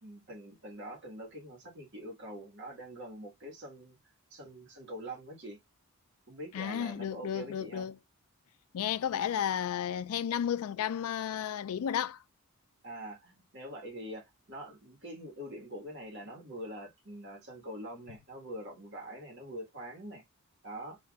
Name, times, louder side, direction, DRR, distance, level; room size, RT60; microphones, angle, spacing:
voice 1, 0.0-4.0 4.3-5.6 6.3-7.9 12.8-20.2 20.6-21.0, right 1 dB, 50° right, 1.7 m, -44 dB
voice 2, 6.5-7.9 8.7-12.2, left 9 dB, 75° left, 0.3 m, -33 dB
3.3 x 2.8 x 2.3 m
head